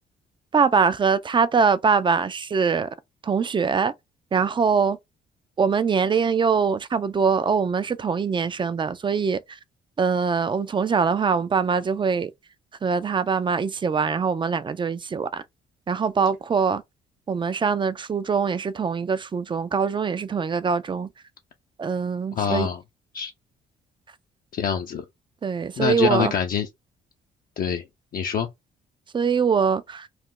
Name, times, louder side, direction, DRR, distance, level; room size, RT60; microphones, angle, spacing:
voice 1, 0.5-2.9 3.2-3.9 4.3-5.0 5.6-9.6 10.0-12.3 12.8-15.4 15.9-16.8 17.3-21.1 21.8-22.7 25.4-26.3 29.1-30.1, right 5 dB, 25° right, 0.4 m, -23 dB
voice 2, 22.3-22.8 23.1-23.3 24.5-25.0 25.8-26.7 27.6-27.8 28.1-28.5, left 8 dB, 50° left, 0.5 m, -25 dB
2.4 x 2.0 x 3.6 m
supercardioid pair, 60°, 19 cm